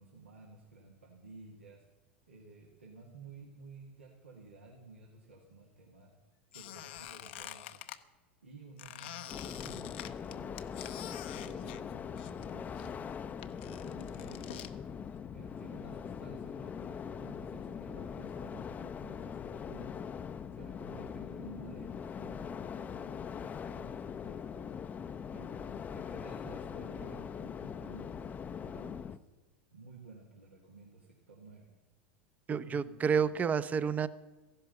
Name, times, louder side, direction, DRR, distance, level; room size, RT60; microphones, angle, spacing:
voice 1, 0.0-1.9 2.3-6.1 6.5-7.9 8.4-10.7 11.2-14.7 15.3-20.0 20.5-24.7 25.3-29.3 29.7-31.7 32.5-33.5, right 3 dB, 90° right, -2 dB, 2.1 m, -54 dB
Squeak, 6.5-8.0 8.8-12.5 12.8-14.7, left 13 dB, 65° left, 0.8 m, -47 dB
sound 1, 9.3-29.2, left 7 dB, 25° left, 0.6 m, -42 dB
voice 2, 32.5-34.1, right 6 dB, 25° right, 16 dB, 0.7 m, -29 dB
15.0 x 11.5 x 6.7 m, 1.2 s
hypercardioid pair, 85°, 6 cm